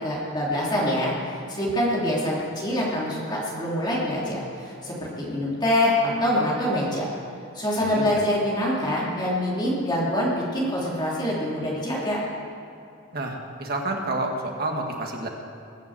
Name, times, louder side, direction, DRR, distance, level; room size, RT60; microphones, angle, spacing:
voice 1, 0.0-7.1 7.5-12.2, left 1 dB, 20° left, -5 dB, 2.9 m, -25 dB
voice 2, 7.8-8.2 13.1-15.3, right 2 dB, 45° right, 1 dB, 1.9 m, -29 dB
21.0 x 7.3 x 7.8 m, 2.6 s
head